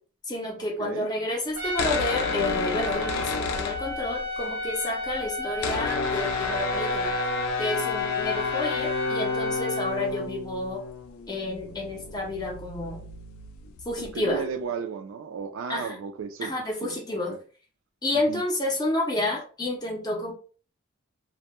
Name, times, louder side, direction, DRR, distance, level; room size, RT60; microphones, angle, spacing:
voice 1, 0.3-7.2 7.6-10.8 11.3-13.0 13.9-14.4 15.7-16.0 16.4-17.3 18.0-20.3, left 1 dB, 20° left, 0.5 m, -30 dB
voice 2, 0.8-1.1 14.0-16.5 16.8-17.4 18.3-18.4, right 6 dB, 70° right, 0.3 m, -34 dB
Trumpet, 1.5-10.0, left 1 dB, 90° right, 0.8 m, -33 dB
sound 1, 1.6-4.4 4.6-4.7 4.9-14.3, left 5 dB, 85° left, 0.3 m, -31 dB
2.1 x 2.0 x 2.9 m
head